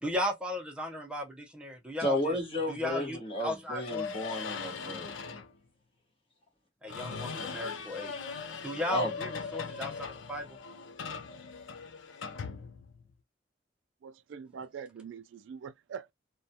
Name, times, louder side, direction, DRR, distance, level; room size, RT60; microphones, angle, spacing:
voice 1, 0.0-2.4 2.7-4.1 6.8-8.2 8.6-10.6, left 1 dB, 5° right, 0.6 m, -36 dB
voice 2, 2.0-5.4 8.9-9.1, left 1 dB, 30° left, 1.0 m, -33 dB
sound 1, 3.8-5.5 6.9-13.1, left 5 dB, 80° left, 0.5 m, -40 dB
voice 3, 14.0-16.1, right 6 dB, 75° right, 0.3 m, -44 dB
2.3 x 2.2 x 2.7 m
head